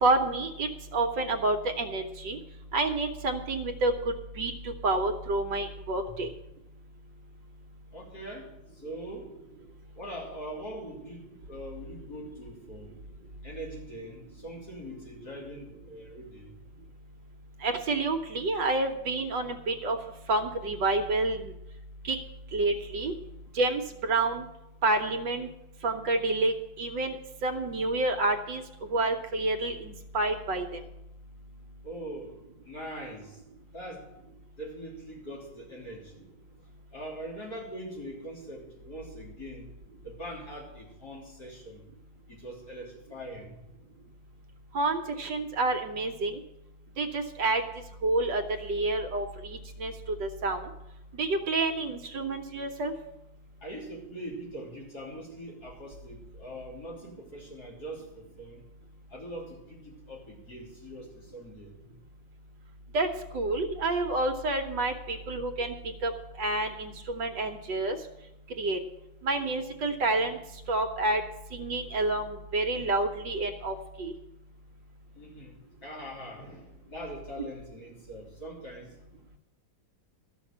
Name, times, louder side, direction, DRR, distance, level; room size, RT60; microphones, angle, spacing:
voice 1, 0.0-2.4 2.7-6.3 17.6-20.0 20.3-21.5 22.0-22.2 22.5-23.1 23.5-24.5 24.8-25.5 25.8-27.2 27.4-28.6 28.9-30.8 44.7-46.4 47.0-47.6 48.0-49.9 50.2-50.7 51.1-52.9 62.9-63.1 63.3-65.7 66.0-66.1 66.4-68.0 68.6-68.8 69.2-70.4 70.7-71.2 71.5-74.1, right 2 dB, 65° right, 5 dB, 1.6 m, -29 dB
voice 2, 7.9-9.3 10.0-12.9 13.4-16.5 31.8-32.4 32.6-33.4 33.7-34.1 34.6-36.3 36.9-39.7 40.0-41.8 42.3-43.5 53.6-58.6 59.1-61.8 75.1-78.9, right 1 dB, 50° left, -3 dB, 3.8 m, -42 dB
13.5 x 6.4 x 8.6 m, 0.89 s
omnidirectional pair, 2.2 m